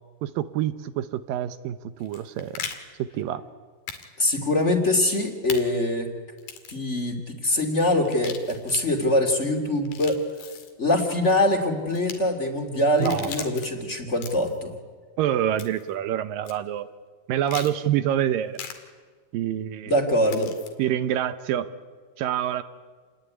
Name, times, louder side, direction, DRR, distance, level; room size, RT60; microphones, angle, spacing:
voice 1, 0.2-2.7 3.0-3.4 13.0-13.5 15.2-16.9 17.3-18.6 19.3-19.9 20.8-21.7 22.2-22.6, right 11 dB, 75° right, 12 dB, 2.5 m, -26 dB
sound 1, 2.0-2.8 3.9-4.0 4.3-4.4 5.5-5.6 6.4-6.8 8.0-8.8 9.8-10.7 11.9-12.2 12.9-13.7 14.1-14.6 15.6-15.9 16.5-16.6 17.5-17.7 18.6-18.7 20.3-20.7, left 7 dB, 85° left, 4.1 m, -38 dB
voice 2, 4.2-6.1 6.7-10.2 10.8-14.7 19.9-20.5, left 1 dB, 20° left, 3 dB, 2.7 m, -23 dB
28.5 x 20.0 x 9.8 m, 1.5 s
omnidirectional pair, 4.2 m